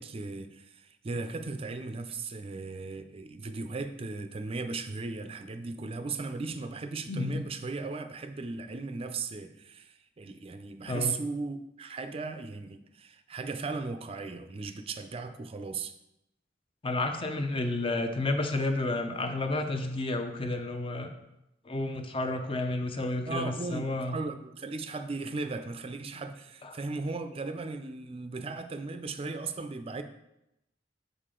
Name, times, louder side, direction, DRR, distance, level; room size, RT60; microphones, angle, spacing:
voice 1, 0.0-16.0 23.3-30.0, right 3 dB, 30° right, 8 dB, 0.4 m, -37 dB
voice 2, 7.1-7.4 10.9-11.2 16.8-21.1 21.6-24.2 26.6-26.7, left 2 dB, 30° left, 6 dB, 0.6 m, -31 dB
6.6 x 4.9 x 3.7 m, 0.86 s
head